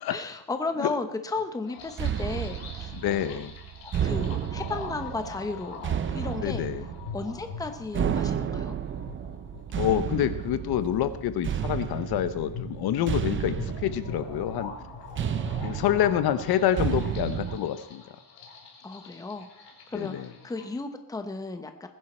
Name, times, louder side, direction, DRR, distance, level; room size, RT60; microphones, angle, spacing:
voice 1, 0.1-3.4 3.8-6.7 7.1-8.7 18.8-19.5 19.9-21.9, left 3 dB, 10° left, 7 dB, 0.9 m, -34 dB
sound 1, 1.6-20.7, left 5 dB, 75° left, 3.4 m, -43 dB
sound 2, 2.0-17.6, right 9 dB, 30° right, 0.5 m, -32 dB
voice 2, 2.9-3.5 6.4-6.8 9.8-14.7 15.6-18.0 19.9-20.3, left 11 dB, 55° left, 12 dB, 0.9 m, -27 dB
19.5 x 10.5 x 4.4 m, 0.75 s
cardioid pair, 165°, 44 cm